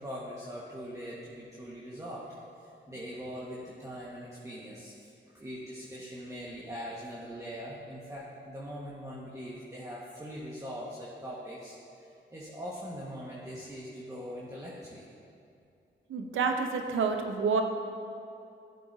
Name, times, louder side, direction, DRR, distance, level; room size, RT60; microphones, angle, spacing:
voice 1, 0.0-15.0, equal, 15° right, -6 dB, 1.5 m, -42 dB
voice 2, 16.1-17.6, right 5 dB, 85° right, 5 dB, 0.7 m, -28 dB
12.0 x 7.6 x 2.7 m, 2.6 s
cardioid pair, 55°, 20 cm